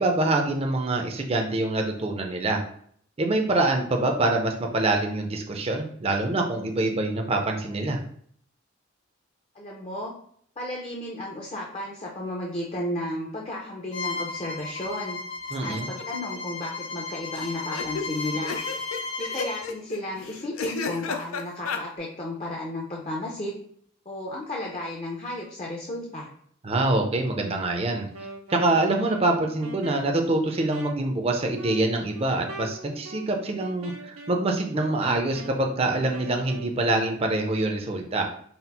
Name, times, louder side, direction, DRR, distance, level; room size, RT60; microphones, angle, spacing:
voice 1, 0.0-2.6 3.2-8.0 15.5-15.9 26.6-28.1 28.5-38.3, right 2 dB, 30° right, 3 dB, 0.5 m, -25 dB
voice 2, 9.5-10.1 10.6-15.2 15.6-18.6 19.2-23.6 24.1-26.3, left 1 dB, 30° left, -2 dB, 0.6 m, -33 dB
Bowed string instrument, 13.9-19.7, left 3 dB, 65° left, 1.0 m, -34 dB
sound 1, 15.5-16.0 16.3-16.4 16.6-16.7 17.3-21.8, left 5 dB, 85° left, 0.4 m, -33 dB
Wind instrument woodwind instrument, 28.0-36.8, right 2 dB, 85° right, 0.6 m, -43 dB
4.2 x 2.0 x 4.1 m, 0.62 s
head